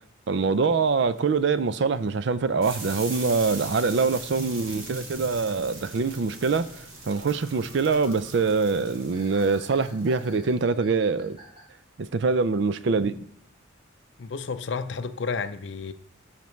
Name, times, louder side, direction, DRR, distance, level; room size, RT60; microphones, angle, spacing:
voice 1, 0.3-11.4 12.0-13.2, right 4 dB, 55° right, 0.4 m, -24 dB
sound 1, 2.6-10.5, right 2 dB, 85° right, 2.5 m, -41 dB
sound 2, 6.7-6.8 7.1-11.6, right 1 dB, 25° right, 3.6 m, -51 dB
voice 2, 14.2-15.9, left 5 dB, 60° left, 0.5 m, -31 dB
12.0 x 5.8 x 3.2 m
head